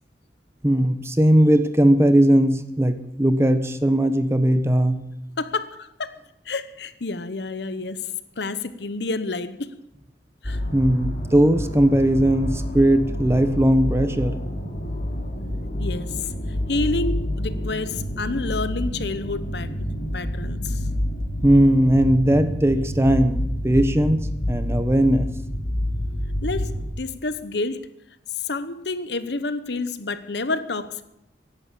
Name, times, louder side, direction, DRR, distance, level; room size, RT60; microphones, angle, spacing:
voice 1, 0.6-5.0 10.7-14.4 21.4-24.2 24.5-25.3, right 1 dB, 15° right, 10 dB, 0.9 m, -18 dB
voice 2, 5.4-6.1 6.5-9.7 10.4-10.6 15.8-16.3 16.7-19.7 20.1-20.9 26.4-27.8 28.4-31.0, left 3 dB, 65° left, 13 dB, 1.0 m, -29 dB
sound 1, 10.4-26.8, left 1 dB, 50° left, 3.1 m, -28 dB
15.5 x 11.0 x 7.5 m, 0.83 s
head